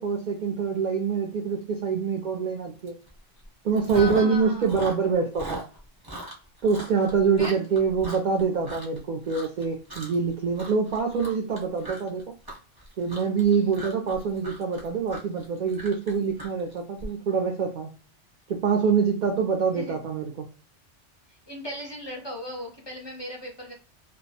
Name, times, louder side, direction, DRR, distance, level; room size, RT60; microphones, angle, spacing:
voice 1, 0.0-2.9 3.6-5.6 6.6-12.2 13.0-17.9 18.5-20.5, right 5 dB, 60° right, 1 dB, 0.4 m, -25 dB
Chewing mastication, 2.9-3.1 3.4-4.4 4.6-9.0 9.3-9.6 9.9-10.3 10.5-17.1, right 1 dB, 25° right, 0.7 m, -39 dB
voice 2, 3.9-4.7 7.4-7.6 13.5-13.7 19.7-20.0 21.5-23.7, left 1 dB, 30° left, -2 dB, 0.5 m, -37 dB
2.2 x 2.1 x 2.7 m, 0.38 s
omnidirectional pair, 1.2 m